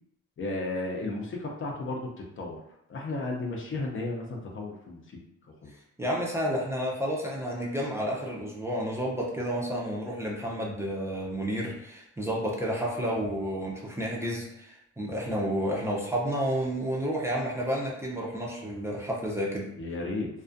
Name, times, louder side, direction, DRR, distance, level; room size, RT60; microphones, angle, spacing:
voice 1, 0.4-2.6 2.9-5.7 19.8-20.3, left 2 dB, 40° left, 0 dB, 0.6 m, -34 dB
voice 2, 6.0-19.7, equal, 10° right, -4 dB, 0.5 m, -31 dB
2.4 x 2.3 x 2.5 m, 0.78 s
cardioid pair, 90°, 30 cm